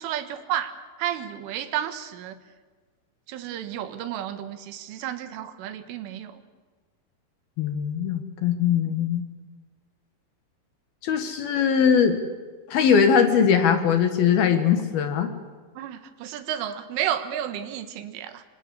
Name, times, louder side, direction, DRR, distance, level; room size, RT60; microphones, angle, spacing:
voice 1, 0.0-2.4 3.3-6.4 15.8-18.4, right 11 dB, 85° right, 10 dB, 3.9 m, -32 dB
voice 2, 7.6-9.2 11.0-12.2 12.7-15.3, left 7 dB, 65° left, 8 dB, 2.8 m, -21 dB
26.0 x 25.5 x 8.3 m, 1.4 s
omnidirectional pair, 5.6 m